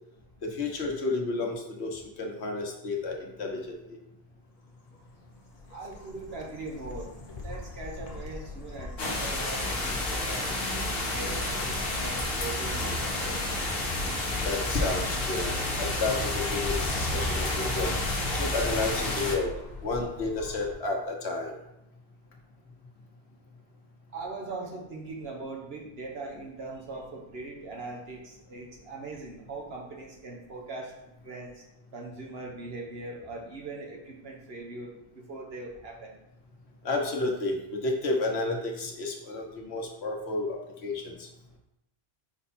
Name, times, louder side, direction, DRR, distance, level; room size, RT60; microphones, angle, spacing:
voice 1, 0.4-4.0 14.4-15.5 15.8-17.9 18.3-19.5 19.8-21.6 36.8-41.3, left 3 dB, 80° left, 1 dB, 1.3 m, -31 dB
sound 1, 4.6-20.7, left 2 dB, 40° left, 0.9 m, -43 dB
voice 2, 5.7-13.8 24.1-30.9 31.2-31.6 31.9-36.1, right 3 dB, 70° right, 0 dB, 1.4 m, -41 dB
sound 2, 9.0-19.4, left 2 dB, 65° left, 1.3 m, -30 dB
5.3 x 4.6 x 4.3 m, 0.87 s
omnidirectional pair, 1.1 m